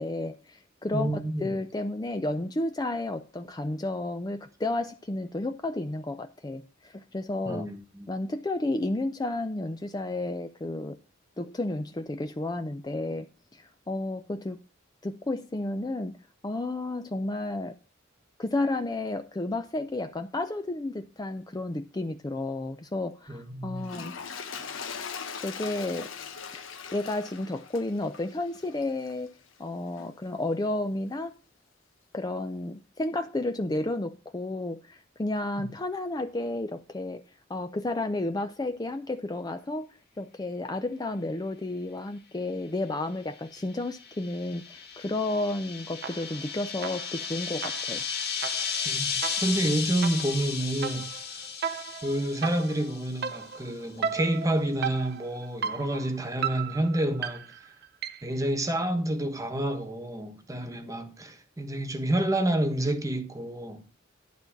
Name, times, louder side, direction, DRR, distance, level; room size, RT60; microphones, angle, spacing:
voice 1, 0.0-7.7 8.1-11.0 11.4-13.3 13.5-14.6 15.0-16.2 16.4-17.8 18.4-24.2 25.1-26.1 26.9-31.4 32.1-37.2 37.5-48.0, left 2 dB, 20° left, 0.5 m, -32 dB
voice 2, 0.9-1.6 7.4-8.1 23.3-23.9 35.6-35.7 48.8-51.1 52.0-57.5 58.2-63.8, right 1 dB, 15° right, 1.2 m, -29 dB
Toilet flush, 23.8-29.3 30.0-30.1, left 6 dB, 85° left, 1.1 m, -40 dB
sound 1, 43.6-53.4, left 6 dB, 55° left, 2.0 m, -34 dB
sound 2, 46.0-46.5 46.8-58.4, right 7 dB, 55° right, 0.6 m, -36 dB
11.5 x 4.0 x 7.2 m
head